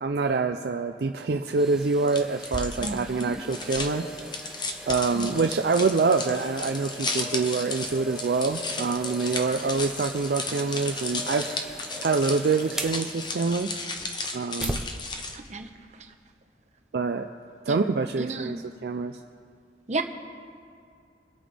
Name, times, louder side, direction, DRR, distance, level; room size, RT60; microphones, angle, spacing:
voice 1, 0.0-4.1 4.9-11.6 12.0-13.8 14.3-14.8 16.9-17.3 17.7-18.6 18.8-19.2, right 4 dB, 60° right, 6 dB, 0.4 m, -26 dB
sound 1, 1.6-14.9 15.4-15.5, equal, 5° right, 0.6 m, -39 dB
sound 2, 2.1-15.5, left 3 dB, 25° left, 0.9 m, -34 dB
voice 2, 2.8-3.4 5.1-5.5 15.3-15.7 17.7-17.8 18.2-18.6 19.9-20.0, right 2 dB, 40° right, 5 dB, 0.9 m, -33 dB
24.0 x 8.8 x 3.4 m, 2.3 s
head